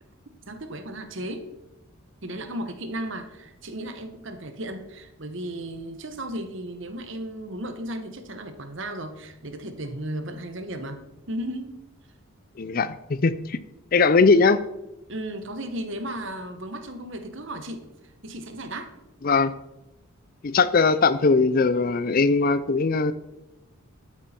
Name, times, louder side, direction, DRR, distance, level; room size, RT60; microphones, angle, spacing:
voice 1, 0.5-1.5 2.2-11.7 15.1-17.8 18.2-18.9, right 1 dB, 60° right, 8 dB, 1.2 m, -35 dB
voice 2, 12.6-13.6 13.9-14.6 19.2-19.5 20.4-23.1, left 4 dB, 40° left, 15 dB, 0.4 m, -20 dB
12.0 x 9.1 x 4.4 m, 0.95 s
head